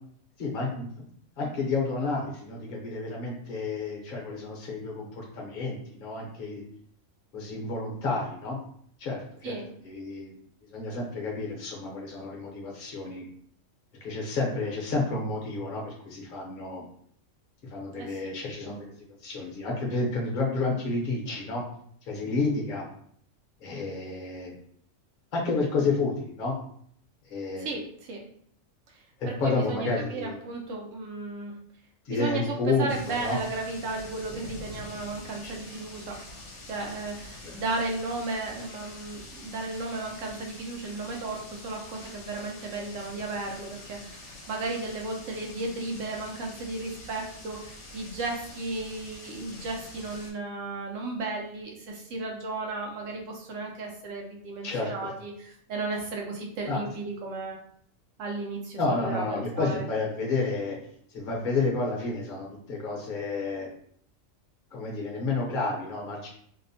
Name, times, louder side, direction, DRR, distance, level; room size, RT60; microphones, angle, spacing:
voice 1, 0.4-0.9 1.4-6.6 7.3-8.6 9.0-9.6 9.8-10.4 10.7-13.3 14.0-16.8 17.7-21.6 22.1-22.9 23.6-24.5 25.3-26.5 27.3-27.7 29.4-30.4 32.1-33.4 35.4-35.5 37.4-37.5 54.6-55.1 56.7-56.9 58.8-60.8 61.1-63.7 64.7-66.3, left 3 dB, 45° left, -1 dB, 0.8 m, -30 dB
voice 2, 27.6-28.2 28.9-31.5 32.1-36.2 36.7-44.2 44.5-57.6 58.2-59.8, right 3 dB, 75° right, 0 dB, 1.0 m, -34 dB
sound 1, 32.9-50.3, left 2 dB, 70° left, 1.0 m, -45 dB
2.8 x 2.1 x 2.6 m, 0.64 s
omnidirectional pair, 1.3 m